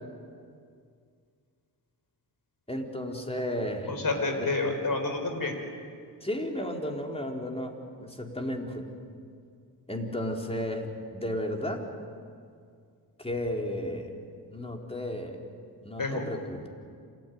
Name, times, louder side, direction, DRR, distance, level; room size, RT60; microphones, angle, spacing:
voice 1, 2.7-3.9 4.3-4.5 6.2-7.7 8.0-8.9 9.9-11.8 13.2-14.1 14.5-15.4 15.8-16.7, left 1 dB, 10° left, 1 dB, 4.3 m, -33 dB
voice 2, 3.9-5.6 16.0-16.2, left 3 dB, 45° left, 5 dB, 5.2 m, -29 dB
27.5 x 14.5 x 9.6 m, 2.2 s
supercardioid pair, 50°, 47 cm